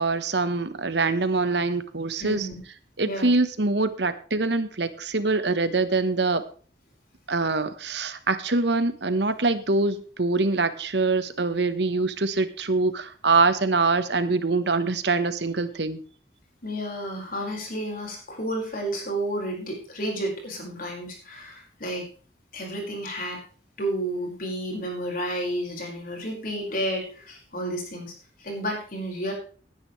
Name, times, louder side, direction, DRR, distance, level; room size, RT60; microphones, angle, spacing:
voice 1, 0.0-2.5 3.0-6.4 7.3-16.0, right 3 dB, 65° right, 12 dB, 1.2 m, -24 dB
voice 2, 2.2-2.6 3.0-3.3 16.6-22.1 22.5-23.4 23.8-28.1 28.4-29.3, right 1 dB, 50° left, 0 dB, 5.2 m, -31 dB
18.5 x 9.9 x 3.2 m, 0.40 s
head